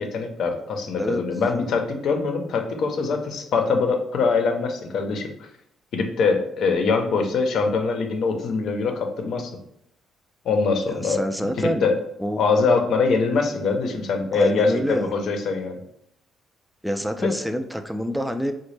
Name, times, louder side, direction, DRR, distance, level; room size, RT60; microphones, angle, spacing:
voice 1, 0.0-5.3 5.9-9.5 10.4-11.9 12.4-15.8 17.2-17.3, left 4 dB, 70° left, 4 dB, 0.6 m, -23 dB
voice 2, 10.9-11.9 12.2-12.4 14.3-15.1 16.8-18.5, equal, ahead, 6 dB, 0.3 m, -26 dB
4.0 x 2.1 x 3.2 m, 0.77 s
cardioid pair, 90°, 0 cm